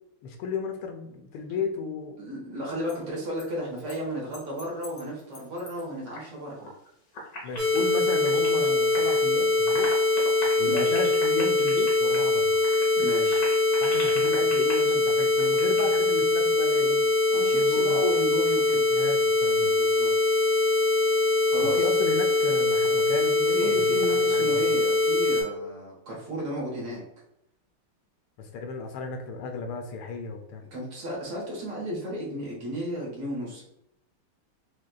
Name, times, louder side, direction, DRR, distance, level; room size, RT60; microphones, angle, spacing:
voice 1, 0.2-2.2 7.4-9.9 10.6-12.5 13.8-17.1 17.5-18.0 18.9-19.7 21.6-24.7 28.4-30.6, left 4 dB, 80° left, 4 dB, 1.5 m, -34 dB
voice 2, 2.2-6.6 10.6-10.9 13.0-13.5 17.3-18.9 19.6-20.2 21.5-21.9 23.6-27.0 30.7-33.6, equal, 75° right, -3 dB, 2.2 m, -33 dB
sound 1, 2.7-3.0 3.4-3.5 3.8-4.0 4.3-6.3 6.5-6.9 7.1-9.2 9.5-15.9, left 1 dB, 55° left, 1.2 m, -40 dB
sound 2, 7.6-25.4, left 2 dB, 45° right, 1.0 m, -23 dB
6.1 x 2.4 x 2.3 m, 0.81 s
omnidirectional pair, 2.4 m